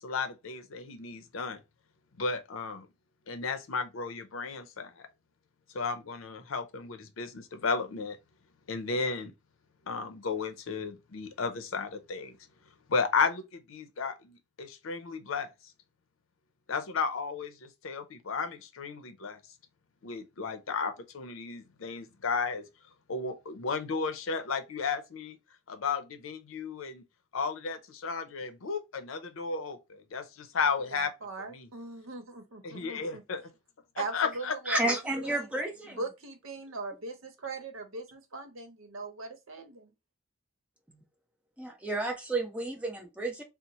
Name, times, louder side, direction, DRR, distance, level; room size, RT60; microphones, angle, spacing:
voice 1, 0.0-1.6 2.2-2.9 3.3-5.1 5.7-8.2 8.7-9.3 9.9-12.4 12.9-15.5 16.7-19.4 20.0-22.6 23.1-25.4 25.7-27.0 27.3-31.1 31.5-31.7 32.6-33.4 34.1-34.5, left 5 dB, 85° left, 0.6 m, -33 dB
voice 2, 30.9-33.2 34.0-35.5 35.9-39.9, right 3 dB, 90° right, 0.8 m, -40 dB
voice 3, 34.7-36.0 40.9-41.0 41.6-43.4, right 2 dB, 5° right, 0.7 m, -31 dB
2.9 x 2.0 x 4.0 m
head